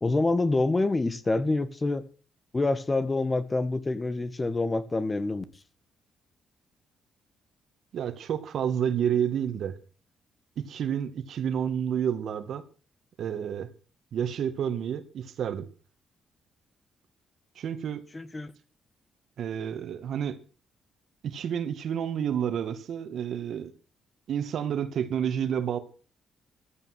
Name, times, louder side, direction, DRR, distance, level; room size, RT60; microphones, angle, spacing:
voice 1, 0.0-2.0 2.5-5.4 18.1-18.5, left 2 dB, 25° left, 1.8 m, -26 dB
voice 2, 7.9-9.8 10.6-12.6 13.2-13.7 14.1-15.7 17.6-18.0 19.4-20.4 21.2-23.7 24.3-25.8, right 8 dB, 70° right, 2.1 m, -29 dB
14.5 x 12.5 x 6.3 m
cardioid pair, 90°, 0 cm